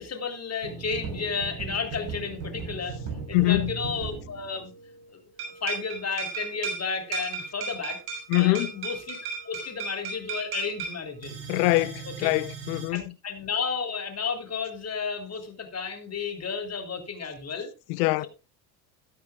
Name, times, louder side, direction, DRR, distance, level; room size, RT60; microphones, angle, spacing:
voice 1, 0.0-3.0 3.3-4.7 5.6-8.0 8.3-9.2 9.4-11.4 12.2-12.3 12.9-17.7, left 5 dB, 30° left, 3.6 m, -32 dB
sound 1, 0.6-5.1 5.4-12.9, right 5 dB, 70° right, 6.5 m, -36 dB
voice 2, 3.3-3.7 8.3-8.7 11.5-13.1 17.9-18.3, left 21 dB, 65° left, 0.8 m, -24 dB
14.0 x 13.0 x 2.4 m
hypercardioid pair, 65°, 49 cm